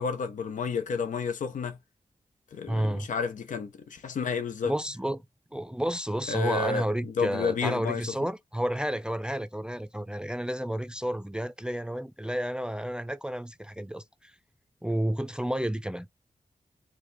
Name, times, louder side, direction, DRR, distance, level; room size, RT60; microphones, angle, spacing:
voice 1, 0.0-1.8 2.5-4.7 6.3-8.1, left 5 dB, 85° left, 0.8 m, -31 dB
voice 2, 2.7-3.1 4.6-5.2 5.5-14.3 14.8-16.1, right 1 dB, 5° right, 0.5 m, -31 dB
4.8 x 2.3 x 4.1 m
cardioid pair, 50°, 13 cm